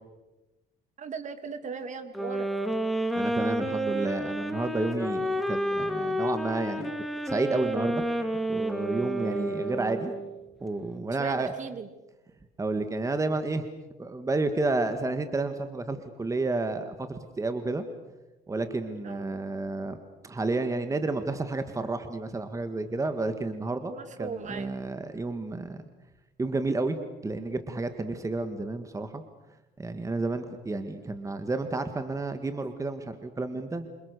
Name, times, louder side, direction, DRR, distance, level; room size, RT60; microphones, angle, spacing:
voice 1, 1.0-2.5 11.2-11.9 19.0-19.4 23.8-24.8, right 5 dB, 45° right, 10 dB, 2.7 m, -38 dB
sound 1, 2.1-10.3, right 1 dB, ahead, 2.7 m, -30 dB
voice 2, 3.2-6.9 7.3-8.0 8.5-10.1 10.6-11.5 12.6-13.6 14.0-17.9 18.5-20.0 20.2-25.9 26.4-27.0 27.2-29.2 29.8-33.9, right 2 dB, 20° right, 8 dB, 1.9 m, -31 dB
28.0 x 27.0 x 6.9 m, 1.0 s
cardioid pair, 110°, 17 cm